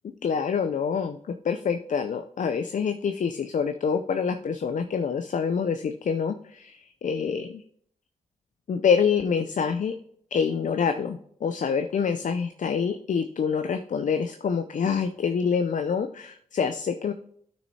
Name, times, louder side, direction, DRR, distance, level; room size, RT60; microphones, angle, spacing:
voice 1, 0.2-7.6 8.7-9.9 10.3-17.1, left 6 dB, 55° left, 8 dB, 0.6 m, -26 dB
12.0 x 6.3 x 2.8 m, 0.65 s
supercardioid pair, 40°, 16 cm